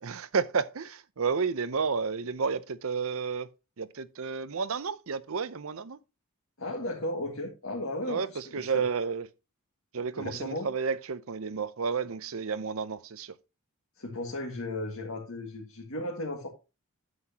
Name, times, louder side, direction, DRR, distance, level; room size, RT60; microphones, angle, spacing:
voice 1, 0.0-3.5 3.8-6.0 8.1-9.3 9.9-13.3, right 5 dB, 70° right, 0.7 m, -31 dB
voice 2, 6.6-8.8 10.2-10.7 14.0-16.5, left 1 dB, 70° left, 2.0 m, -35 dB
9.6 x 7.9 x 2.9 m
head